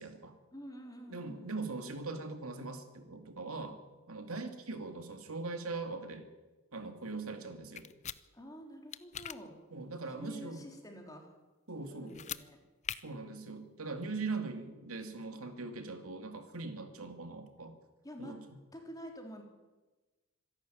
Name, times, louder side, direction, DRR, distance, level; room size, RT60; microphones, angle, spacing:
voice 1, 0.0-0.4 1.1-3.8 4.1-6.3 6.7-7.9 9.7-10.6 11.7-12.2 13.0-17.8 18.2-18.6, right 3 dB, 90° right, 6 dB, 2.4 m, -41 dB
voice 2, 0.5-1.6 8.3-9.6 10.2-11.3 11.9-12.6 18.0-18.3 18.7-19.4, equal, 15° left, 2 dB, 3.3 m, -48 dB
sound 1, 7.8-8.2 8.9-9.4 12.1-12.4 12.8-13.0, left 9 dB, 35° left, 0.6 m, -40 dB
25.0 x 11.5 x 9.2 m, 1.2 s
head